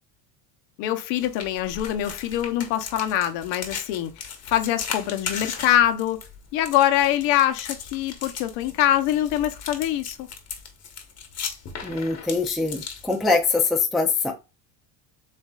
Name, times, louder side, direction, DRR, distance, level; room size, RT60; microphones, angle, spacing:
voice 1, 0.8-6.2 6.5-10.3, left 12 dB, 70° left, 0.9 m, -24 dB
sound 1, 1.2-13.6, left 6 dB, 35° left, 1.1 m, -37 dB
voice 2, 11.8-14.3, left 4 dB, ahead, 0.5 m, -23 dB
7.4 x 2.7 x 2.4 m
cardioid pair, 125°, 46 cm